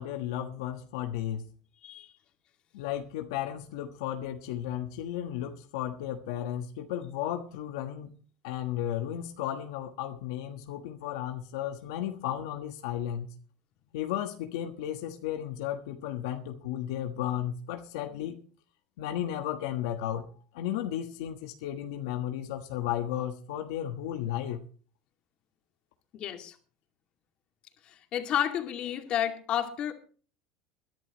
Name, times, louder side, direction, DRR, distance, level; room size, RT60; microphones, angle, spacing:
voice 1, 0.0-1.4 2.7-8.1 8.4-13.3 13.9-18.4 19.0-20.2 20.5-24.6, left 11 dB, 85° left, 5 dB, 1.3 m, -34 dB
voice 2, 26.1-26.5 27.8-29.9, left 10 dB, 45° left, 5 dB, 2.4 m, -31 dB
22.0 x 11.0 x 3.1 m, 0.40 s
supercardioid pair, 120°, 2 cm